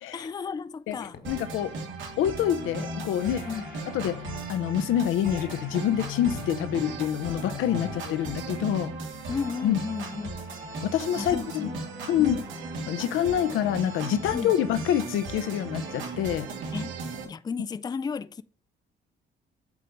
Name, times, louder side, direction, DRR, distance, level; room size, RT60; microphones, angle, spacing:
voice 1, 0.1-1.2 3.5-3.7 9.3-10.5 11.2-11.8 12.2-12.4 14.3-14.5 16.7-16.9 17.2-18.4, left 5 dB, 20° left, 0.4 m, -33 dB
sound 1, 0.9-9.9, left 7 dB, 55° left, 1.3 m, -42 dB
sound 2, 1.2-17.2, right 3 dB, 80° right, 2.8 m, -37 dB
voice 2, 1.3-1.7 2.2-3.5 3.9-4.2 4.5-8.9 9.6-9.8 10.8-11.7 12.1-12.4 12.9-16.5, left 10 dB, 90° left, 0.8 m, -26 dB
8.4 x 3.2 x 5.2 m
cardioid pair, 90°, 20 cm